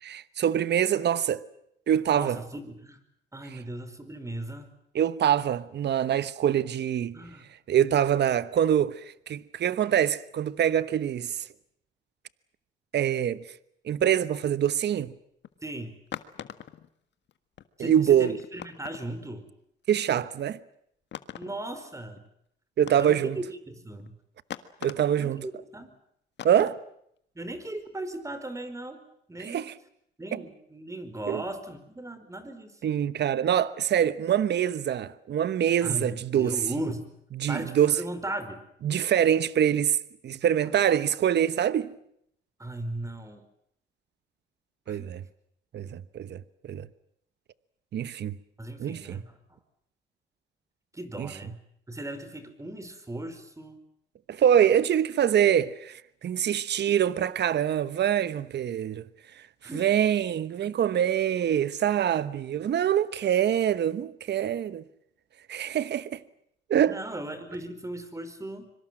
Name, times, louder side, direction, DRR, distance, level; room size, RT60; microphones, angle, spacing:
voice 1, 0.0-1.4 1.9-2.4 3.5-3.6 4.9-7.2 7.7-11.5 12.9-13.4 13.8-15.1 17.8-18.4 19.9-20.6 22.8-23.4 24.8-25.5 26.4-26.8 29.4-29.7 30.3-30.4 31.3-31.4 32.8-36.6 37.3-38.0 38.8-40.0 40.2-41.9 44.9-45.2 45.7-46.9 47.9-48.4 48.8-49.2 51.2-51.4 54.3-59.0 59.7-64.8 65.5-66.2 66.7-67.0, right 10 dB, 60° right, 1.1 m, -25 dB
voice 2, 2.1-3.0 3.3-4.7 7.1-7.5 15.6-16.0 17.8-19.5 21.4-22.2 23.0-24.1 25.2-25.9 27.3-29.0 29.3-29.7 30.2-32.7 35.8-37.1 37.5-38.6 42.6-43.4 44.9-45.2 48.6-49.6 50.9-51.6 51.9-53.8 59.6-59.9 60.2-60.3 60.6-60.7 66.9-68.7, right 1 dB, 15° right, 4.9 m, -37 dB
sound 1, 15.4-15.6 16.1-16.9 17.3-17.4 17.6-17.7 17.9-18.0 18.4-19.3 20.2-20.3 21.1-21.6 22.2-22.3 22.8-23.3 24.0-24.1 24.5-25.2 25.8-25.9 26.4-26.8, left 10 dB, 65° left, 1.7 m, -41 dB
25.5 x 24.0 x 7.6 m
cardioid pair, 90°, 20 cm